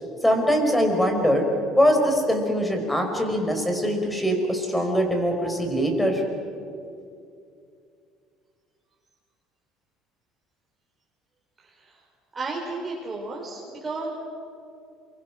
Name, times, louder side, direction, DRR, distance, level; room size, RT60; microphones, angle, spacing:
voice 1, 0.2-1.4 1.7-6.2, equal, 5° left, 3 dB, 5.3 m, -22 dB
voice 2, 11.6-12.0 12.3-14.1, right 3 dB, 25° right, -2 dB, 4.4 m, -33 dB
28.5 x 23.5 x 6.4 m, 2.4 s
supercardioid pair, 95°, 0 cm